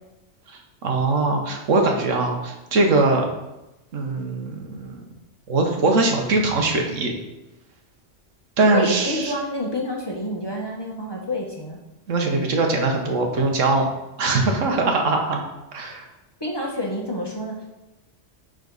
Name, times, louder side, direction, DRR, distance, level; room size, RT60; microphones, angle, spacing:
voice 1, 0.5-3.2 3.9-5.0 5.5-7.1 8.6-9.3 12.1-13.9 14.2-15.4 15.7-16.1, right 3 dB, 85° right, 2 dB, 1.4 m, -21 dB
voice 2, 8.7-11.8 16.4-17.7, left 1 dB, 20° left, -2 dB, 1.2 m, -28 dB
9.9 x 4.0 x 4.0 m, 0.97 s
omnidirectional pair, 1.3 m